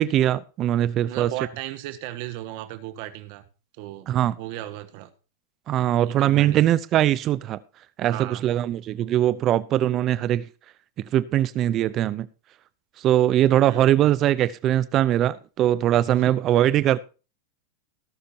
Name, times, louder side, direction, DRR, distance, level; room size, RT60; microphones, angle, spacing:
voice 1, 0.0-1.3 4.1-4.4 5.7-7.6 8.0-10.4 11.1-12.3 13.0-17.0, right 12 dB, 40° right, 0.6 m, -21 dB
voice 2, 1.1-3.4 3.8-4.1 4.4-5.1 6.2-6.6 8.1-8.4 13.7-13.9 16.2-16.4, right 14 dB, 55° right, 1.5 m, -35 dB
18.0 x 6.6 x 4.4 m
hypercardioid pair, 115°, 0 cm